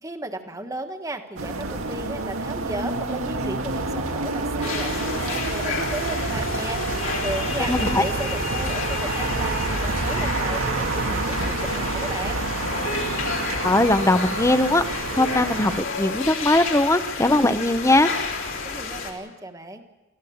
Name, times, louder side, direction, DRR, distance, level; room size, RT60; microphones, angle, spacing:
voice 1, 0.0-12.4 18.6-19.8, right 1 dB, 15° right, 5 dB, 1.5 m, -35 dB
sound 1, 1.4-15.8, right 2 dB, 85° right, 2.0 m, -28 dB
sound 2, 4.6-19.1, left 4 dB, 70° left, 3.8 m, -31 dB
voice 2, 7.7-8.0 13.6-18.1, left 2 dB, 15° left, 11 dB, 0.8 m, -20 dB
24.0 x 15.0 x 8.6 m, 1.1 s
head